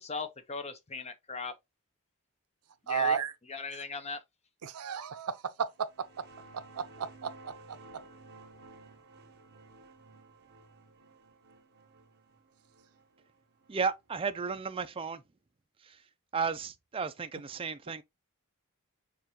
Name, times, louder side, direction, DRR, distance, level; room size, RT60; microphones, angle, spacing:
voice 1, 0.0-1.5 2.9-3.2 3.5-4.2, left 4 dB, 30° left, 0.7 m, -38 dB
voice 2, 2.9-3.3 3.7-3.8 4.6-5.7 6.8-7.8, right 7 dB, 80° right, 0.5 m, -33 dB
sound 1, 5.8-15.1, right 3 dB, 50° right, 1.0 m, -55 dB
voice 3, 13.7-15.2 15.8-16.0 16.3-18.0, right 5 dB, 25° right, 0.4 m, -34 dB
6.7 x 2.4 x 2.8 m
head